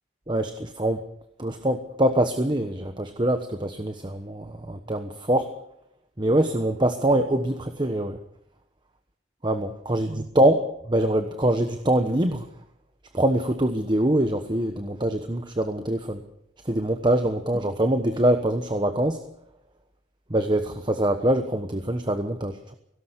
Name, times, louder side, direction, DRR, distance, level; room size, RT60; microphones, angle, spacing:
voice 1, 0.3-1.0 1.4-5.5 6.2-8.2 9.4-12.5 13.1-16.2 16.6-19.2 20.3-22.7, right 1 dB, 25° right, 7 dB, 1.2 m, -24 dB
17.5 x 17.5 x 8.3 m, 0.76 s
head